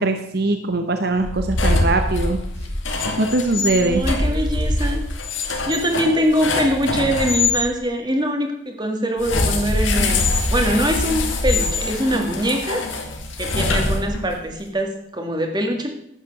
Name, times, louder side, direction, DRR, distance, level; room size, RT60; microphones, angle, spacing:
voice 1, 0.0-2.4 3.2-4.0, right 2 dB, 55° right, 6 dB, 0.9 m, -21 dB
sound 1, 1.2-7.6 9.2-14.4, left 2 dB, 80° left, 2.3 m, -23 dB
voice 2, 3.6-5.0 5.7-10.2 10.5-12.8 13.4-15.9, equal, 20° right, 4 dB, 1.8 m, -23 dB
12.0 x 8.7 x 6.4 m, 0.79 s
head